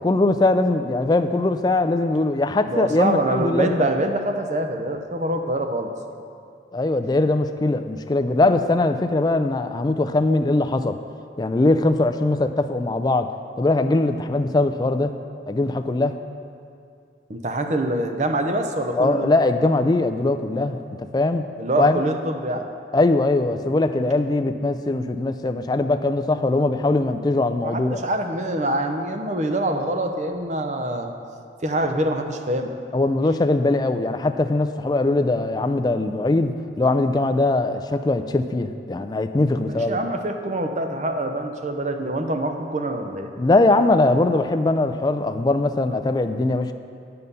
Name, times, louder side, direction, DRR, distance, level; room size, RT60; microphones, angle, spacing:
voice 1, 0.0-3.8 6.7-11.0 11.4-13.3 13.6-15.1 15.5-16.2 19.0-20.8 21.1-21.5 21.8-22.0 22.9-28.0 32.9-40.0 43.4-46.7, left 2 dB, 20° left, 8 dB, 0.3 m, -21 dB
voice 2, 2.7-5.9 17.3-19.3 21.6-22.6 27.6-31.1 31.6-32.7 39.6-43.3, right 1 dB, 40° right, 5 dB, 0.6 m, -25 dB
9.4 x 6.8 x 5.4 m, 2.4 s
head